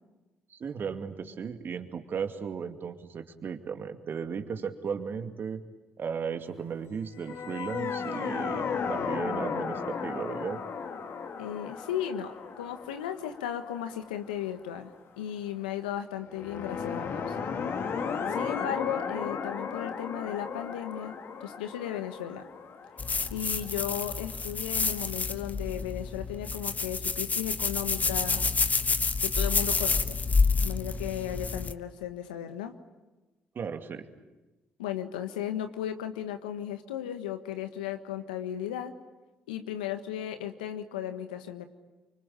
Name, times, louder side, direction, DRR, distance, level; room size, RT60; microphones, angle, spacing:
voice 1, 0.5-5.6 6.0-10.6 33.5-34.1, right 6 dB, 50° right, 6 dB, 2.4 m, -35 dB
sound 1, 7.2-14.4 16.3-24.1, left 6 dB, 60° left, 2.4 m, -35 dB
voice 2, 11.4-14.9 15.2-17.4 18.3-22.4 23.3-28.5 29.2-30.2 30.6-32.7 34.8-38.9 39.5-41.6, left 10 dB, 90° left, 9 dB, 1.4 m, -35 dB
sound 2, 23.0-31.7, left 4 dB, 35° left, 1.2 m, -28 dB
26.5 x 25.0 x 9.0 m, 1.1 s
hypercardioid pair, 50°, 4 cm